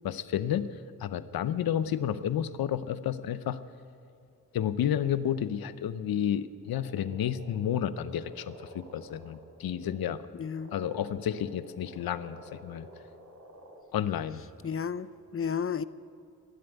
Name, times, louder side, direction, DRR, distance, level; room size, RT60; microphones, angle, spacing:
voice 1, 0.0-0.7 1.0-3.6 4.5-10.2 10.7-12.9 13.9-14.4, left 10 dB, 80° left, 14 dB, 0.7 m, -31 dB
sound 1, 6.6-10.2 10.5-13.8, equal, 50° right, 3.3 m, -50 dB
voice 2, 10.3-10.7 14.6-15.8, left 7 dB, 40° left, 16 dB, 0.6 m, -32 dB
19.0 x 7.8 x 9.1 m, 2.5 s
supercardioid pair, 45°, 35 cm